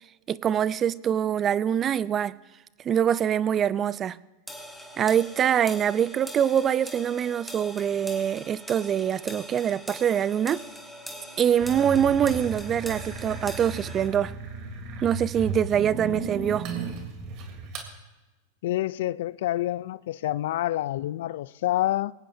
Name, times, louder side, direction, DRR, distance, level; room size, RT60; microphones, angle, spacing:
voice 1, 0.3-2.4 2.8-4.2 5.0-10.6 11.4-14.3 15.0-16.7, right 9 dB, 30° right, 0.5 m, -24 dB
sound 1, 4.5-14.1, equal, 5° right, 2.8 m, -42 dB
sound 2, 11.6-17.9, right 4 dB, 50° right, 3.4 m, -35 dB
voice 2, 18.6-22.1, left 14 dB, 70° left, 0.4 m, -27 dB
22.5 x 18.5 x 2.8 m
hypercardioid pair, 105°, 0 cm